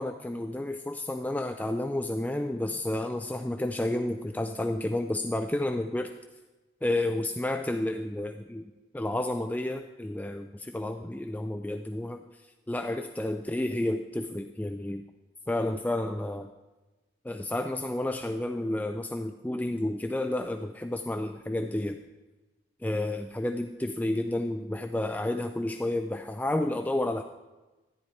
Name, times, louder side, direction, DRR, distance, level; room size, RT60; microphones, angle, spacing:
voice 1, 0.0-6.1 6.8-8.6 8.9-12.2 12.7-15.0 15.5-16.5 17.2-22.0 22.8-27.2, left 1 dB, 10° left, 6 dB, 0.3 m, -31 dB
14.0 x 9.9 x 4.4 m, 1.2 s
head